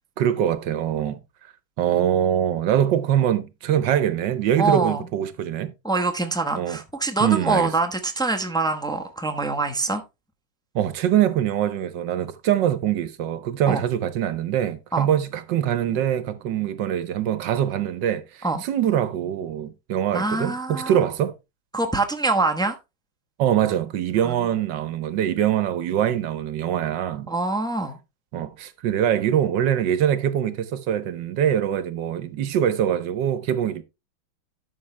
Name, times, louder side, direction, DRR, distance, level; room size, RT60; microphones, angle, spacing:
voice 1, 0.2-1.2 1.8-5.7 6.5-6.8 7.2-7.7 10.7-21.3 23.4-27.3 28.3-33.8, right 10 dB, 65° right, 1.3 m, -23 dB
voice 2, 4.6-5.0 5.8-10.0 13.7-13.8 14.9-15.1 18.4-18.6 20.1-20.9 21.7-22.8 24.2-24.3 27.3-28.0, right 3 dB, 5° left, 0.3 m, -24 dB
11.5 x 6.3 x 3.2 m
omnidirectional pair, 2.2 m